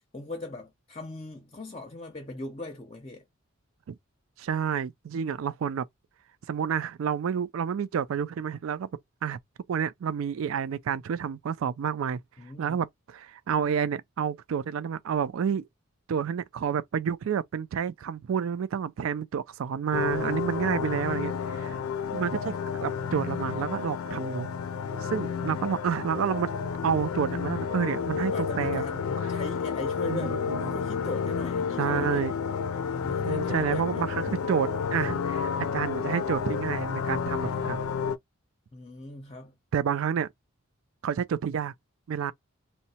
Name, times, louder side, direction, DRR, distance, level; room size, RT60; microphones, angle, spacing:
voice 1, 0.1-3.2 12.4-12.8 25.0-25.6 28.3-32.3 32.8-34.1 38.7-39.6, left 2 dB, 30° left, 0.6 m, -40 dB
voice 2, 4.4-5.9 6.5-8.9 9.2-9.4 9.7-12.2 12.6-15.6 16.1-21.8 22.1-22.6 22.8-24.5 25.0-26.5 26.8-28.8 30.1-30.2 30.5-30.8 31.8-32.3 33.2-37.8 39.7-40.3 41.0-41.7 42.1-42.3, right 7 dB, 75° right, 0.3 m, -29 dB
sound 1, 19.9-38.2, left 6 dB, 80° left, 0.4 m, -31 dB
2.8 x 2.1 x 4.1 m
head